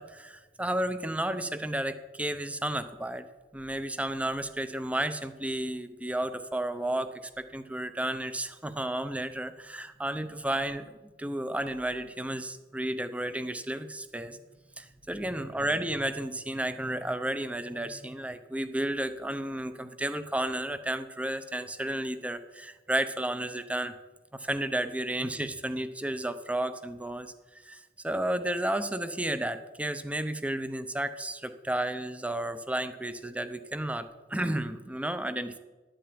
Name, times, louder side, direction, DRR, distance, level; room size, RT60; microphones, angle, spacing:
voice 1, 0.0-3.3 3.5-14.4 14.8-23.9 24.3-27.3 27.6-35.6, right 1 dB, 10° right, 11 dB, 0.7 m, -32 dB
11.5 x 9.1 x 8.7 m, 1.2 s
head